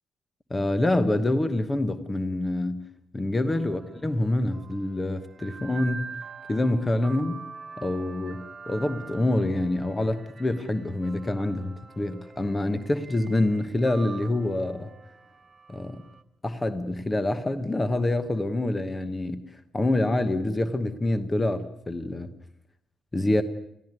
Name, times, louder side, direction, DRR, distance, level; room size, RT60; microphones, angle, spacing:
voice 1, 0.5-2.9 3.1-6.2 6.5-7.4 7.8-14.9 15.7-16.0 16.4-19.4 19.7-22.3 23.1-23.4, left 1 dB, 15° left, 1.1 m, -26 dB
sound 1, 3.5-16.2, right 4 dB, 25° right, 1.5 m, -45 dB
22.0 x 15.0 x 9.6 m
cardioid pair, 150°, 0 cm